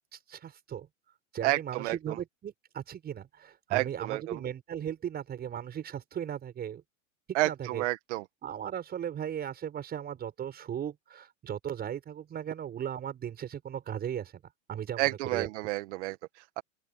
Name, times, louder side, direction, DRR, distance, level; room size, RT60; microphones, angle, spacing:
voice 1, 0.1-0.9 1.3-6.8 7.5-7.8 8.4-14.4 14.7-15.5, right 9 dB, 25° right, 5.9 m, -37 dB
voice 2, 1.4-2.2 3.7-4.4 7.3-8.2 15.0-16.6, right 19 dB, 60° right, 1.5 m, -30 dB
open air
supercardioid pair, 140°, 40 cm